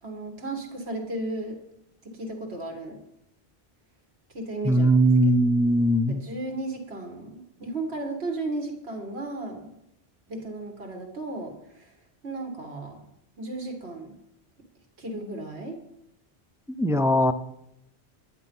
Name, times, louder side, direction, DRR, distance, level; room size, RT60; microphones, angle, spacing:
voice 1, 0.0-1.6 2.0-3.0 4.3-4.9 5.3-5.4 6.1-9.7 10.3-12.0 12.2-13.0 13.4-14.2 15.0-15.8, right 2 dB, 75° right, 2 dB, 2.1 m, -34 dB
voice 2, 4.6-6.2 16.8-17.3, right 1 dB, 5° right, 9 dB, 0.3 m, -20 dB
10.5 x 10.0 x 5.4 m, 0.82 s
omnidirectional pair, 1.1 m